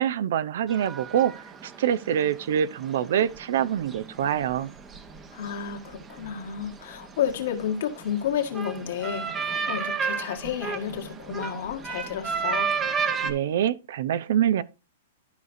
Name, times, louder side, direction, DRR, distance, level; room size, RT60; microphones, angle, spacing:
voice 1, 0.0-4.7 13.2-14.6, right 10 dB, 65° right, 0.6 m, -25 dB
sound 1, 0.7-13.3, right 6 dB, 20° right, 0.9 m, -33 dB
voice 2, 5.3-12.7, left 9 dB, 65° left, 1.6 m, -31 dB
12.5 x 5.0 x 2.6 m
hypercardioid pair, 145°, 0 cm